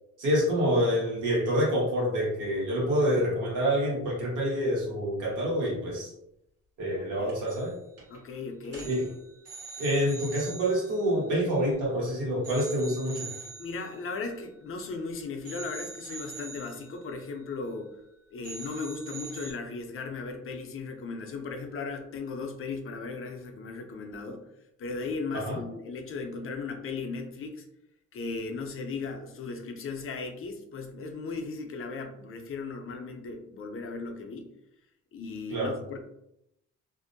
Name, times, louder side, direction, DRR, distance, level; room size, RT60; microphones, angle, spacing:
voice 1, 0.2-6.1 6.8-7.8 8.8-9.1 9.8-13.3 25.3-25.6 35.5-35.7, equal, 80° right, -5 dB, 1.2 m, -27 dB
sound 1, 7.3-7.7 8.0-8.2 8.6-12.0 12.4-15.0 15.4-18.1 18.4-19.5, right 4 dB, 55° right, 1.1 m, -45 dB
voice 2, 8.1-8.9 13.6-18.0 18.3-24.4 24.8-27.7 28.1-34.5 35.1-36.0, left 4 dB, 45° left, 4 dB, 0.6 m, -37 dB
2.6 x 2.1 x 2.6 m, 0.81 s
cardioid pair, 90°, 30 cm